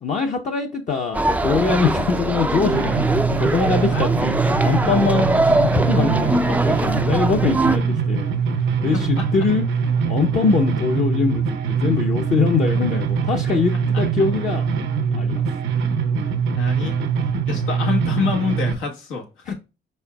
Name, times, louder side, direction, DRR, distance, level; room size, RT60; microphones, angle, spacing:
voice 1, 0.0-8.3 8.8-9.7 9.9-14.6 15.1-15.5 19.5-19.6, left 5 dB, 40° left, 0.7 m, -23 dB
sound 1, 1.1-7.8, right 2 dB, 10° right, 0.3 m, -22 dB
sound 2, 2.7-18.7, right 6 dB, 85° right, 0.7 m, -23 dB
voice 2, 8.9-9.3 13.9-14.0 16.5-17.0 17.5-19.5, left 5 dB, 90° left, 1.2 m, -26 dB
4.4 x 4.3 x 2.3 m
cardioid pair, 90°, 20 cm